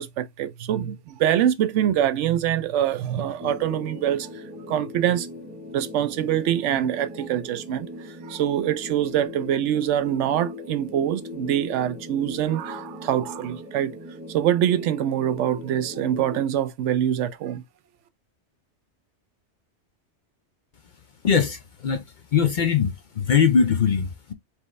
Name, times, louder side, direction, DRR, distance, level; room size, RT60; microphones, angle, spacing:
voice 1, 0.0-4.3 4.7-5.3 5.7-7.9 8.3-14.0 14.3-17.6, right 10 dB, 85° right, 0.9 m, -24 dB
sound 1, 3.4-16.5, left 1 dB, 10° right, 0.6 m, -39 dB
voice 2, 21.2-22.0 22.3-24.3, left 6 dB, 55° left, 0.6 m, -21 dB
4.6 x 2.9 x 3.1 m
omnidirectional pair, 1.2 m